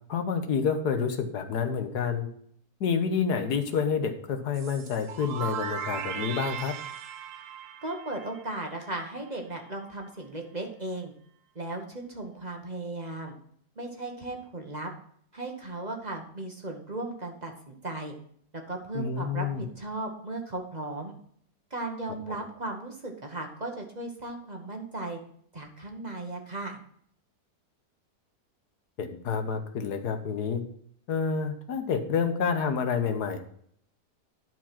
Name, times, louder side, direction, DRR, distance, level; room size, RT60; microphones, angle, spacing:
voice 1, 0.1-2.3 2.8-6.7 18.9-19.6 29.0-30.6 31.1-33.4, left 6 dB, 80° left, 7 dB, 1.5 m, -28 dB
sound 1, 4.5-9.3, right 8 dB, 65° right, 1.0 m, -38 dB
voice 2, 7.8-11.1 11.5-13.3 13.8-14.9 15.3-18.1 18.7-21.1 21.7-25.2 25.5-26.8, right 2 dB, 30° right, 2 dB, 1.2 m, -36 dB
11.5 x 4.6 x 5.8 m, 0.63 s
omnidirectional pair, 1.7 m